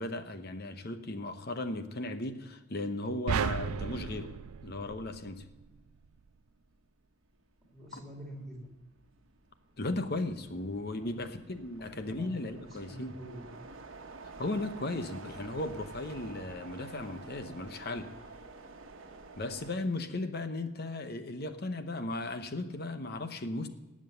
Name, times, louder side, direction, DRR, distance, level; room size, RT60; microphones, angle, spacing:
voice 1, 0.0-4.3 4.6-5.4 7.9-8.0 9.8-13.1 14.4-18.1 19.4-23.7, left 2 dB, 45° left, 8 dB, 0.8 m, -36 dB
sound 1, 3.3-5.7, right 7 dB, 80° right, 0.4 m, -34 dB
sound 2, 5.5-19.7, right 3 dB, 60° right, 1.2 m, -50 dB
voice 2, 7.6-8.6 11.0-11.1 11.9-13.5, right 1 dB, ahead, -1 dB, 3.6 m, -47 dB
19.0 x 7.5 x 6.8 m, 1.1 s
head